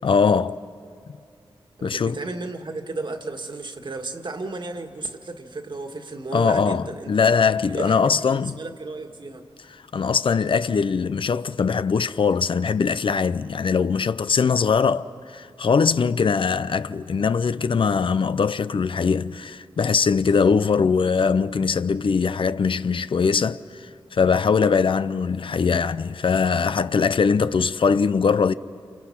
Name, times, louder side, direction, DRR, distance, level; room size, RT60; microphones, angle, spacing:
voice 1, 0.0-0.6 1.8-2.2 6.3-8.5 9.9-23.6 24.1-28.5, left 5 dB, 65° left, 0.5 m, -21 dB
voice 2, 1.8-7.1 7.7-9.4, right 3 dB, 55° right, 1.8 m, -34 dB
29.5 x 28.0 x 5.9 m
wide cardioid pair, 75°, 10 cm